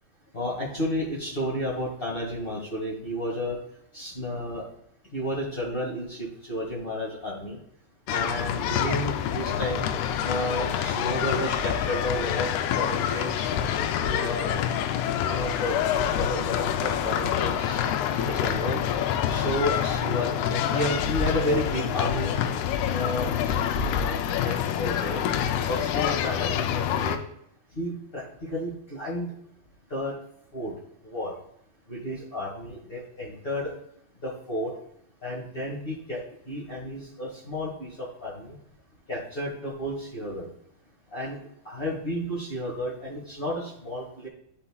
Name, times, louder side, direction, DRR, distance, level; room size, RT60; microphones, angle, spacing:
voice 1, 0.3-3.6 3.9-4.6 5.1-7.6 8.1-9.9 10.2-12.5 12.7-13.5 14.0-14.5 15.3-17.8 18.2-18.8 19.3-22.4 22.8-25.2 25.6-27.2 27.7-29.3 29.9-30.1 30.5-30.7 31.0-31.3 31.9-33.7 34.2-34.7 35.2-38.6 39.1-40.5 41.1-41.4 41.6-44.3, left 1 dB, 60° left, -5 dB, 0.6 m, -32 dB
sound 1, 8.1-27.2, left 9 dB, 80° left, 2.5 m, -27 dB
11.0 x 5.7 x 2.3 m, 0.71 s
omnidirectional pair, 4.5 m